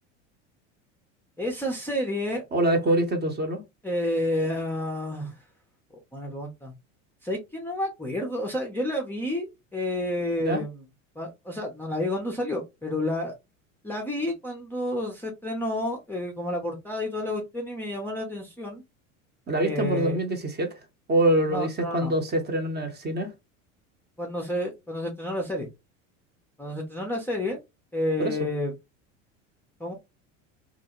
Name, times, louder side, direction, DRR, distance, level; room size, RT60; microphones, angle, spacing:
voice 1, 1.4-2.4 3.8-5.4 5.9-6.7 7.2-10.8 11.2-13.3 13.8-18.8 19.6-20.2 21.5-22.1 24.2-25.7 26.6-27.6 27.9-28.7 29.8-29.9, left 1 dB, 5° left, 0.5 m, -30 dB
voice 2, 2.5-3.6 10.4-10.6 19.5-20.8 21.1-23.3 28.2-28.4, right 1 dB, 25° right, 0.8 m, -25 dB
2.4 x 2.1 x 2.9 m
hypercardioid pair, 90°, 38 cm